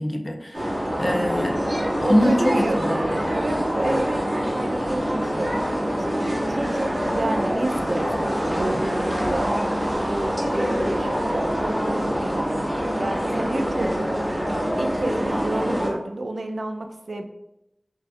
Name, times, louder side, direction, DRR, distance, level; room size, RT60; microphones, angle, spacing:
voice 1, 0.0-1.5 2.0-2.7, equal, 35° left, 3 dB, 0.4 m, -23 dB
sound 1, 0.5-15.9, equal, 35° right, 1.4 m, -25 dB
voice 2, 1.0-1.3 2.0-5.6 6.0-9.6 10.0-14.1 14.8-17.3, right 2 dB, 85° right, 5 dB, 0.3 m, -30 dB
sound 2, 8.1-11.7, equal, 20° right, 1.2 m, -37 dB
4.6 x 2.4 x 2.3 m, 0.90 s
wide cardioid pair, 50°, 0 cm